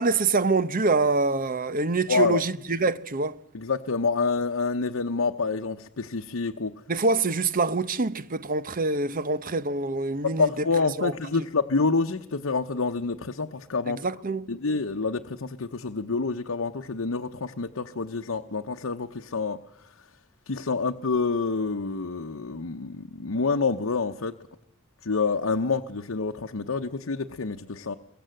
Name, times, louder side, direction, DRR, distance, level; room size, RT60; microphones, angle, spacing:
voice 1, 0.0-3.4 6.9-10.6 11.0-11.4 13.9-14.5, right 3 dB, 45° right, 0.9 m, -25 dB
voice 2, 2.1-2.4 3.5-6.7 10.4-14.0 14.5-19.6 20.5-24.3 25.0-27.9, left 4 dB, 85° left, 0.9 m, -27 dB
26.0 x 23.0 x 7.7 m
head